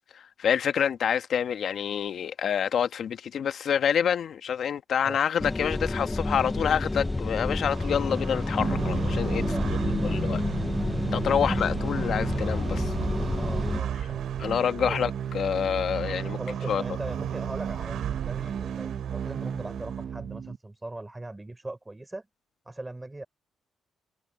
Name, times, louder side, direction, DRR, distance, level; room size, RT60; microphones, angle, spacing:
voice 1, 0.1-9.4 10.0-10.4 11.1-12.9 14.4-16.4 16.7-16.8, left 8 dB, 60° left, 1.4 m, -27 dB
sound 1, 5.4-13.8, left 2 dB, 15° left, 0.8 m, -29 dB
sound 2, 7.7-20.0, right 11 dB, 75° right, 3.6 m, -40 dB
sound 3, 8.6-20.6, right 8 dB, 60° right, 1.5 m, -34 dB
voice 2, 9.5-10.7 11.4-11.7 13.4-14.2 14.8-15.0 16.4-22.3 22.7-23.2, right 2 dB, 15° right, 4.1 m, -40 dB
cardioid pair, 100°, 0 cm